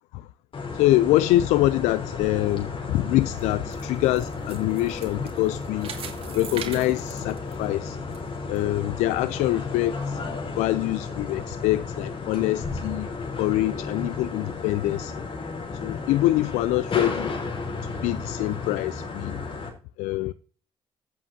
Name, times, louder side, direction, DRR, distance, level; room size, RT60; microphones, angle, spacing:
sound 1, 0.5-19.7, left 4 dB, 50° left, 3.7 m, -33 dB
voice 1, 0.7-5.9 6.3-8.0 8.5-10.2 10.6-13.1 13.4-15.2 15.8-17.3 18.0-19.4 20.0-20.3, left 16 dB, 85° left, 0.4 m, -25 dB
sound 2, 3.2-8.2 8.6-8.7 9.2-9.3, right 7 dB, 55° right, 2.3 m, -41 dB
16.0 x 7.4 x 2.7 m
supercardioid pair, 65°, 12 cm